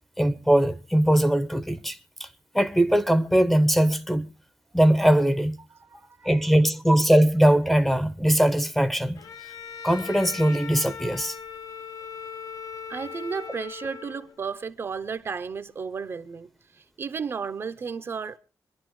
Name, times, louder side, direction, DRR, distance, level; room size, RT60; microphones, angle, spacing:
voice 1, 0.2-2.0 2.5-4.3 4.7-5.6 6.2-9.2 9.8-11.4, right 1 dB, 5° left, 0.6 m, -21 dB
voice 2, 5.7-6.5 12.9-18.4, right 5 dB, 40° right, 0.6 m, -34 dB
Bowed string instrument, 9.1-14.4, left 6 dB, 75° left, 0.8 m, -39 dB
26.0 x 11.0 x 3.1 m
wide cardioid pair, 165°, 6 cm